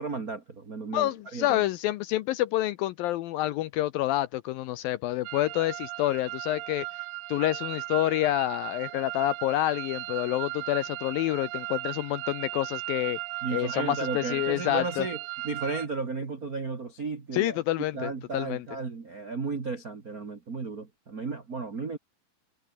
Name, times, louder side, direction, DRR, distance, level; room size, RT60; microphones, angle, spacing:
voice 1, 0.0-1.6 13.4-15.2 15.4-17.6 17.9-22.0, right 4 dB, 35° right, 1.6 m, -34 dB
voice 2, 0.9-6.9 7.3-13.2 13.5-15.1 17.3-18.6, left 15 dB, 80° left, 2.1 m, -28 dB
sound 1, 5.3-15.9, right 20 dB, 90° right, 3.0 m, -37 dB
omnidirectional pair, 4.9 m